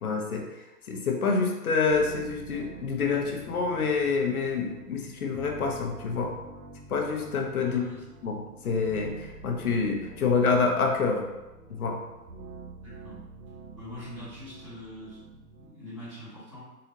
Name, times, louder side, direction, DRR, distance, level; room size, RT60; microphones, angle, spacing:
voice 1, 0.0-0.4 0.9-6.3 6.9-7.8 8.2-8.4 8.6-11.2 11.7-12.0, left 4 dB, 65° left, 2 dB, 0.8 m, -27 dB
sound 1, 1.8-15.7, right 3 dB, 70° right, 0.9 m, -47 dB
voice 2, 7.6-8.0 12.8-13.2 13.7-16.6, left 1 dB, 20° right, -11 dB, 1.4 m, -43 dB
3.9 x 2.9 x 2.8 m, 1.0 s
hypercardioid pair, 175°, 48 cm